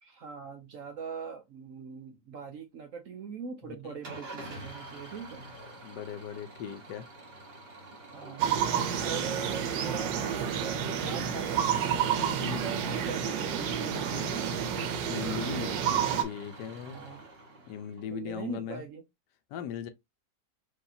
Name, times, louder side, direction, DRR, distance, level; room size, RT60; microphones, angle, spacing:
voice 1, 0.0-5.5 8.1-8.6 9.0-14.6 16.9-17.3 18.1-19.0, right 5 dB, 65° right, 0.9 m, -41 dB
Engine starting / Idling, 4.0-18.2, right 2 dB, 35° right, 1.5 m, -48 dB
voice 2, 5.6-7.1 12.4-12.6 15.0-15.9 16.2-17.0 17.7-18.8 19.5-19.9, left 8 dB, 75° left, 1.2 m, -39 dB
sound 1, 8.4-16.2, right 8 dB, 85° right, 1.4 m, -30 dB
4.7 x 2.8 x 2.7 m
omnidirectional pair, 1.9 m